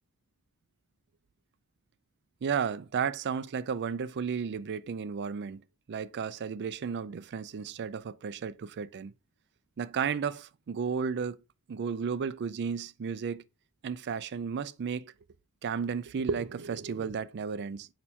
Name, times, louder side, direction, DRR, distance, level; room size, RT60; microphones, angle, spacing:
voice 1, 2.4-9.1 9.8-11.4 11.7-13.4 13.8-15.1 15.6-17.9, right 6 dB, 50° right, 0.4 m, -33 dB
6.5 x 5.4 x 2.8 m
head